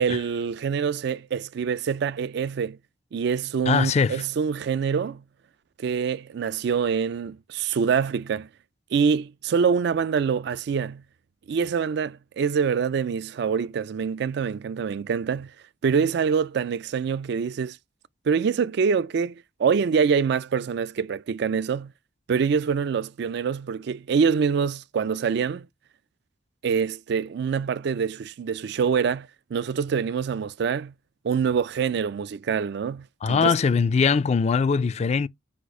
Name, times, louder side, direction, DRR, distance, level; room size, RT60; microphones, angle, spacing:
voice 1, 0.0-2.8 3.1-5.2 5.8-8.5 8.9-11.0 11.5-15.5 15.8-17.8 18.3-21.9 22.3-25.7 26.6-30.9 31.2-33.6, right 6 dB, 60° right, 0.3 m, -25 dB
voice 2, 3.7-4.2 33.2-35.3, left 5 dB, 35° left, 0.3 m, -21 dB
4.4 x 2.4 x 4.7 m
head